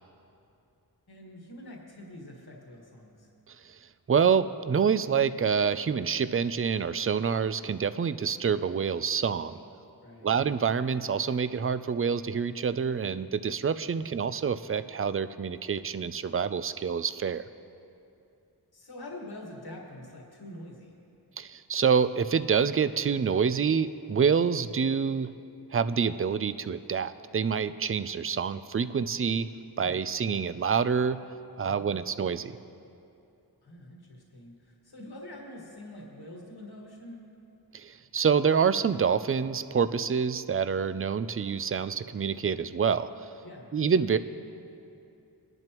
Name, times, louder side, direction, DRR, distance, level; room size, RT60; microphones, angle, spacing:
voice 1, 1.1-3.3 10.0-10.3 18.7-20.9 29.7-30.0 31.7-32.0 33.6-37.3 43.4-43.7, left 1 dB, 70° left, -1 dB, 1.8 m, -45 dB
voice 2, 3.5-3.8 4.1-9.6 10.2-17.5 21.4-25.3 25.7-29.5 29.8-31.2 31.6-32.6 37.7-43.1 43.7-44.2, right 6 dB, 35° right, 13 dB, 0.4 m, -27 dB
21.0 x 11.0 x 3.0 m, 2.7 s
wide cardioid pair, 65°, 39 cm